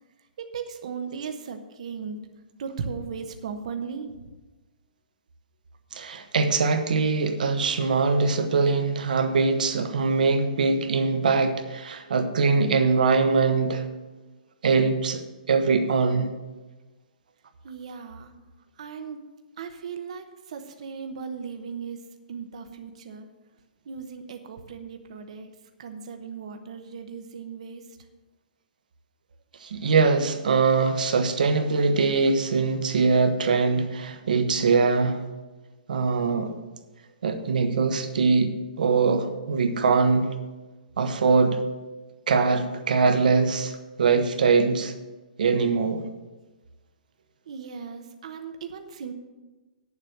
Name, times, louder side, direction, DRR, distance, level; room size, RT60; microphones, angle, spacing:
voice 1, 0.4-2.2 2.6-4.1 17.6-18.3 18.8-19.2 19.6-22.0 22.3-23.3 23.9-25.5 25.8-27.8 47.5-49.1, right 6 dB, 45° right, 6 dB, 0.9 m, -37 dB
voice 2, 5.9-13.8 14.6-15.2 15.5-16.3 29.6-35.2 35.9-36.6 37.2-40.3 41.0-41.6 42.3-43.7 44.0-44.9 45.4-46.0, right 4 dB, 70° right, 8 dB, 1.2 m, -22 dB
9.5 x 7.4 x 6.5 m, 1.2 s
hypercardioid pair, 180°, 5 cm